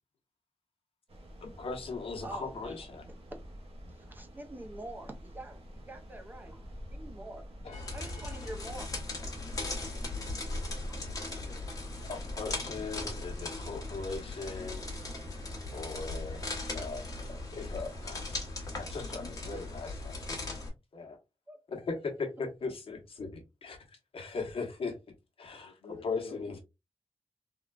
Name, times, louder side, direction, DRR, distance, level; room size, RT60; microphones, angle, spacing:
sound 1, 1.1-18.4, equal, 65° right, 0.8 m, -46 dB
voice 1, 1.4-3.0 12.1-14.8 15.7-18.5 18.8-20.2 20.9-21.2 21.7-23.8 24.1-24.9 25.4-26.6, left 4 dB, 65° left, 1.0 m, -39 dB
voice 2, 2.2-2.8 3.3-3.4 3.9-5.6 5.9-6.6 6.9-7.5 7.9-8.9 11.1-11.2 19.5-19.7 21.5-21.6 23.2-23.3, right 2 dB, 15° right, 0.5 m, -45 dB
voice 3, 7.6-8.7 11.0-11.6 25.6-26.6, left 3 dB, 85° left, 0.6 m, -52 dB
sound 2, 7.7-20.7, left 2 dB, 35° left, 1.0 m, -39 dB
3.7 x 2.2 x 2.3 m
wide cardioid pair, 170°, 11 cm